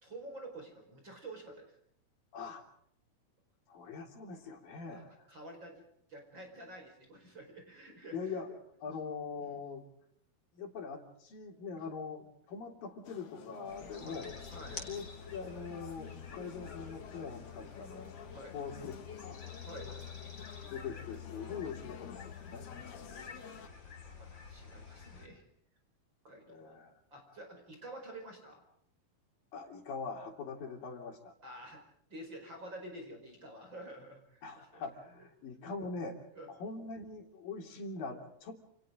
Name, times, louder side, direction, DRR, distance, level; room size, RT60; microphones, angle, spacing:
voice 1, 0.0-1.7 4.9-5.8 6.1-8.4 9.4-9.6 11.7-11.9 14.0-14.2 14.5-14.9 18.3-18.6 19.6-20.1 22.8-23.3 24.2-25.4 26.2-26.7 27.1-28.6 31.4-31.8 32.1-34.4 34.7-34.8 36.3-36.5, right 1 dB, 30° right, 4 dB, 5.4 m, -49 dB
voice 2, 2.3-2.6 3.7-5.3 8.1-9.8 10.5-14.4 14.9-18.9 19.2-19.4 20.7-22.7 26.5-26.9 29.5-31.3 34.4-38.6, left 5 dB, 65° left, 3 dB, 4.9 m, -43 dB
sound 1, 13.0-23.7, left 8 dB, 90° left, 4.0 m, -51 dB
sound 2, 13.7-25.3, left 6 dB, 30° left, 4.3 m, -48 dB
29.5 x 29.0 x 3.8 m, 0.70 s
omnidirectional pair, 4.4 m